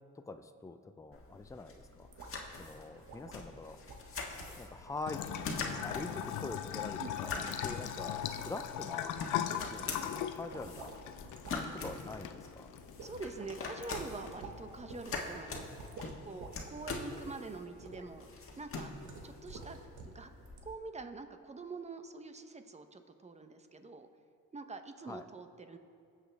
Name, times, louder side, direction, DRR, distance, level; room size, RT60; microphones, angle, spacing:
voice 1, 0.3-3.8 4.3-12.7 25.1-25.2, left 3 dB, 10° left, 8 dB, 0.6 m, -45 dB
sound 1, 1.1-20.7, left 3 dB, 45° left, 1.6 m, -44 dB
sound 2, 2.1-2.3 2.6-2.7 3.1-3.4 3.9-4.1 4.4-4.6 4.9-5.0 5.3-6.1 6.5-7.2 7.7-7.9 8.2-8.7 9.2-9.3 9.6-11.0 11.2-11.6 11.9-12.2 12.5-12.6 13.0-13.5 13.9-14.6 14.9-15.2 15.6-16.6 16.9-17.2 17.8-18.1 19.0-20.2 20.5-20.6, right 4 dB, 80° right, 1.4 m, -50 dB
Bathtub (filling or washing) / Trickle dribble, 5.1-16.0, left 10 dB, 80° left, 0.6 m, -40 dB
voice 2, 7.0-7.5 13.0-15.7 16.0-18.3 18.6-18.9 19.2-19.8 20.0-20.3 20.6-24.1 24.5-25.8, right 3 dB, 20° right, 8 dB, 0.9 m, -45 dB
22.5 x 7.5 x 3.5 m, 2.5 s
cardioid pair, 90°, 30 cm